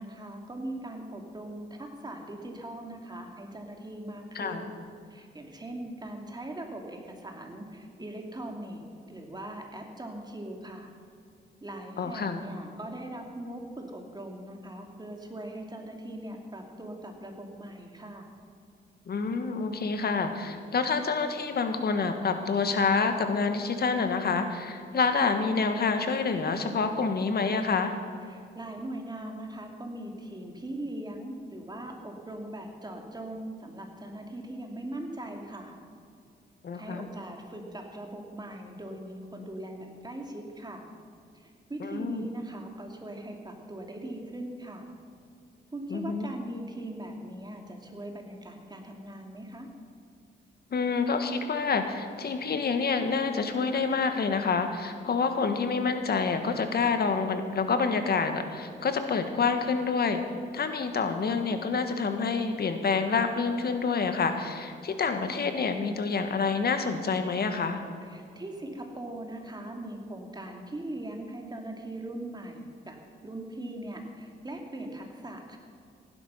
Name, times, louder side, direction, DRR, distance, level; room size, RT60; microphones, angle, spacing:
voice 1, 0.0-4.8 5.1-10.9 11.6-18.3 28.3-35.7 36.7-40.8 41.3-44.9 45.7-49.7 68.0-73.0 73.2-75.6, right 1 dB, 20° right, 2 dB, 2.7 m, -40 dB
voice 2, 12.0-12.4 19.1-27.9 36.6-37.1 41.8-42.3 45.9-46.3 50.7-60.2 60.5-67.8, left 4 dB, 55° left, 7 dB, 1.7 m, -27 dB
16.0 x 11.5 x 5.8 m, 2.4 s
cardioid pair, 80°, 19 cm